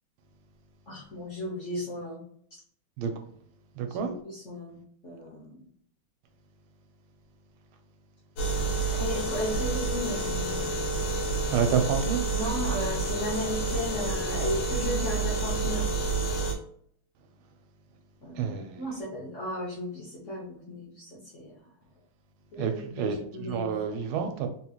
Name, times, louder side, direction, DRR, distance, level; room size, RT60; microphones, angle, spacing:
voice 1, 0.9-2.2 4.0-4.8 5.0-5.7 8.9-10.9 12.3-15.9 18.2-21.6 22.5-24.0, left 1 dB, 50° left, -4 dB, 1.0 m, -35 dB
voice 2, 3.8-4.1 11.5-12.3 18.4-18.8 22.6-23.2 23.5-24.5, right 7 dB, 85° right, 5 dB, 1.4 m, -28 dB
sound 1, 8.4-16.5, right 3 dB, 85° left, 1.7 m, -29 dB
3.8 x 2.9 x 2.3 m, 0.65 s
omnidirectional pair, 2.3 m